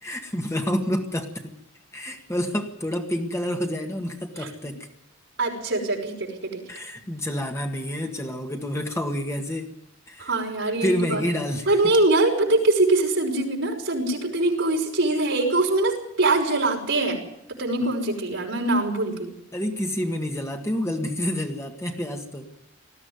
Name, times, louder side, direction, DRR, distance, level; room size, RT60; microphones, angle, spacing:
voice 1, 0.0-1.5 1.9-4.9 6.7-9.7 10.1-10.3 10.8-11.7 19.5-22.5, equal, 15° left, 3 dB, 1.8 m, -28 dB
voice 2, 5.4-6.6 10.2-11.2 11.7-17.2 17.6-19.3, right 2 dB, 60° right, 0 dB, 5.5 m, -23 dB
20.0 x 14.5 x 9.6 m, 0.84 s
head